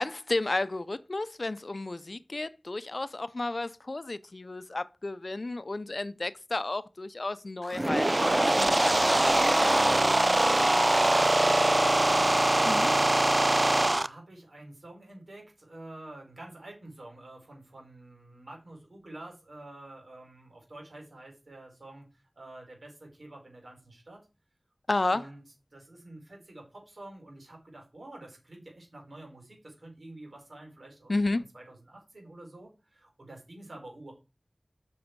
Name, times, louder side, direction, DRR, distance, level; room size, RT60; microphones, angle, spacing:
voice 1, 0.0-9.9 12.7-12.9 24.9-25.3 31.1-31.4, left 2 dB, 65° left, 0.5 m, -32 dB
sound 1, 7.6-14.1, right 1 dB, 40° right, 0.5 m, -23 dB
voice 2, 10.2-13.0 13.9-22.1 22.3-24.2 25.1-25.4 25.7-34.1, right 1 dB, 80° right, 4.6 m, -48 dB
7.4 x 6.2 x 4.7 m
wide cardioid pair, 45°, 0 cm